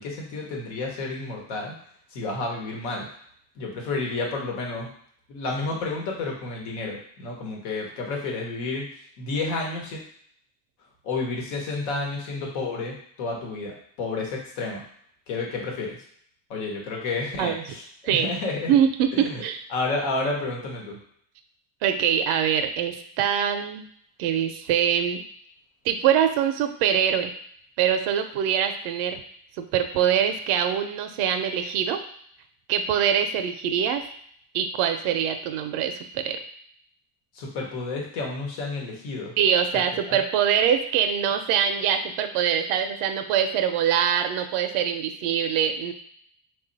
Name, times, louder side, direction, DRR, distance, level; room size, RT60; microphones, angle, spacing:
voice 1, 0.0-1.7 2.1-3.1 3.6-4.9 5.3-8.9 9.2-10.0 11.0-14.8 15.3-16.0 16.5-18.7 19.2-19.4 19.7-21.0 37.3-39.3 39.9-40.2, left 3 dB, 90° left, -1 dB, 1.2 m, -30 dB
voice 2, 18.7-19.6 21.8-23.9 24.2-25.2 25.8-27.3 27.8-29.2 29.6-32.0 32.7-34.0 34.5-36.4 39.4-45.9, right 8 dB, 85° right, 8 dB, 0.6 m, -23 dB
3.3 x 2.4 x 3.9 m, 0.63 s
cardioid pair, 110°, 49 cm